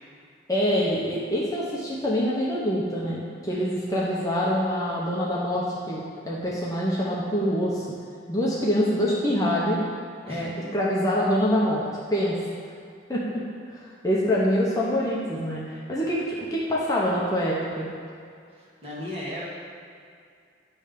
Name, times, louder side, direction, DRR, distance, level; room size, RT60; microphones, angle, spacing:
voice 1, 0.5-7.9 8.3-9.8 10.3-12.4 13.1-17.9, equal, 20° left, -6 dB, 0.8 m, -25 dB
voice 2, 10.3-10.7 18.6-19.4, left 1 dB, 30° right, -7 dB, 1.6 m, -36 dB
9.8 x 3.3 x 5.1 m, 2.3 s
head